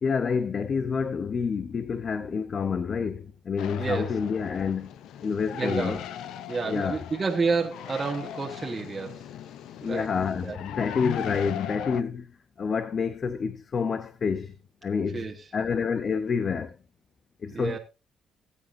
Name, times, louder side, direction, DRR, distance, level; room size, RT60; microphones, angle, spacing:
voice 1, 0.0-4.9 5.2-6.0 6.7-7.0 9.8-12.3 12.6-14.6 14.8-16.8 17.4-17.8, left 6 dB, 45° left, 0.8 m, -28 dB
sound 1, 3.6-12.0, left 10 dB, 85° left, 0.7 m, -39 dB
voice 2, 3.8-4.1 5.5-6.0 6.5-9.3 9.8-10.1 10.4-10.6 15.1-15.4 17.5-17.8, right 4 dB, 30° right, 1.4 m, -29 dB
19.5 x 8.2 x 2.7 m
cardioid pair, 90°, 0 cm